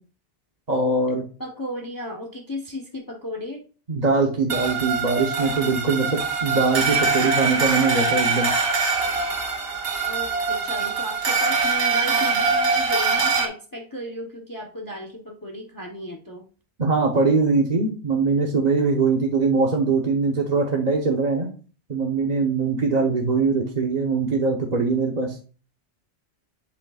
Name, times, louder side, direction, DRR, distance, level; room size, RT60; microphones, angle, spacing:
voice 1, 0.7-1.2 3.9-8.5 16.8-21.5 21.9-25.4, right 4 dB, 40° right, 0 dB, 1.1 m, -22 dB
voice 2, 1.4-3.6 10.1-16.5, left 1 dB, 20° left, 1 dB, 0.9 m, -34 dB
sound 1, 4.5-13.5, right 4 dB, 65° right, 1.3 m, -23 dB
10.5 x 5.3 x 2.4 m, 0.38 s
omnidirectional pair, 1.1 m